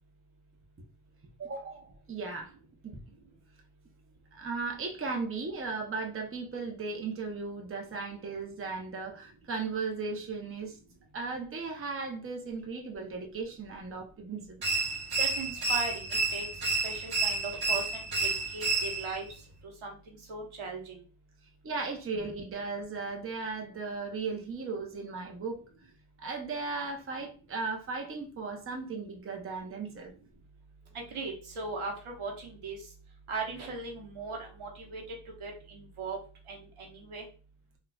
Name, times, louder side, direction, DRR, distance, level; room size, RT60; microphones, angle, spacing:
voice 1, 1.4-2.5 2.8-3.0 4.3-10.8 11.1-14.6 21.6-25.7 26.2-30.1, right 4 dB, 25° right, 0.7 m, -36 dB
sound 1, 14.6-19.2, right 3 dB, 45° right, 1.0 m, -30 dB
voice 2, 15.2-16.5 16.8-19.3 19.8-20.0 20.3-21.0 30.9-32.8 33.3-35.0 35.4-36.2 36.5-37.2, right 4 dB, 80° right, 1.1 m, -38 dB
4.0 x 2.3 x 2.3 m
cardioid pair, 75°, 49 cm